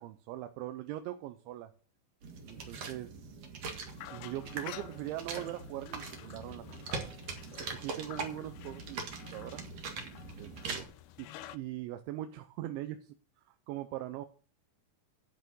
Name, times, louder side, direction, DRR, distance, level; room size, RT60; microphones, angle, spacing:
voice 1, 0.0-1.7 2.5-3.4 4.1-7.1 7.7-9.0 9.3-9.6 10.4-10.9 11.2-11.3 11.5-13.1 13.5-14.3, right 14 dB, 80° right, 8 dB, 3.0 m, -41 dB
sound 1, 2.2-10.8, right 4 dB, 55° right, 1.8 m, -42 dB
sound 2, 3.9-11.6, left 12 dB, 85° left, 2.4 m, -50 dB
10.5 x 6.8 x 6.1 m, 0.40 s
omnidirectional pair, 5.6 m